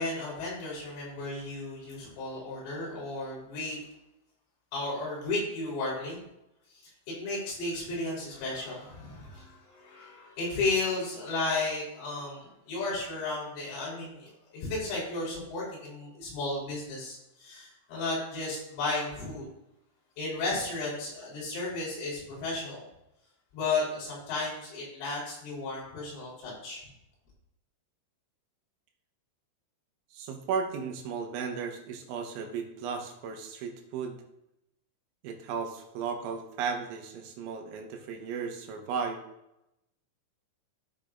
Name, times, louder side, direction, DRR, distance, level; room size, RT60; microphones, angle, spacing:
voice 1, 0.0-3.8 4.7-6.2 6.7-19.5 20.2-22.9 23.5-26.9, left 3 dB, 75° left, -5 dB, 6.3 m, -34 dB
voice 2, 30.1-34.2 35.2-39.2, right 6 dB, 75° right, 3 dB, 3.2 m, -35 dB
14.0 x 6.4 x 2.5 m, 0.86 s
omnidirectional pair, 5.8 m